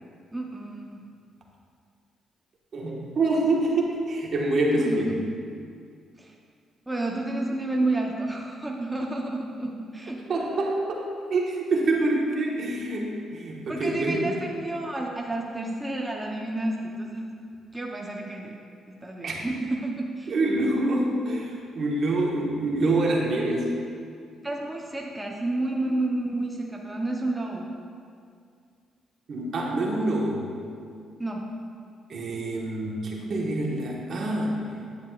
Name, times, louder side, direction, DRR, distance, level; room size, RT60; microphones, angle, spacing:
voice 1, 0.3-1.0 4.8-5.2 6.2-6.3 6.9-10.2 13.7-17.4 17.7-18.5 19.0-20.3 24.4-27.7 31.2-31.4, right 2 dB, 10° right, -1 dB, 0.7 m, -30 dB
voice 2, 2.7-5.2 10.3-11.0 11.3-14.4 19.2-19.4 20.3-23.7 29.3-30.4 32.1-34.6, right 2 dB, 55° right, -2 dB, 1.3 m, -26 dB
9.9 x 7.1 x 2.4 m, 2.3 s
cardioid pair, 90°, 0 cm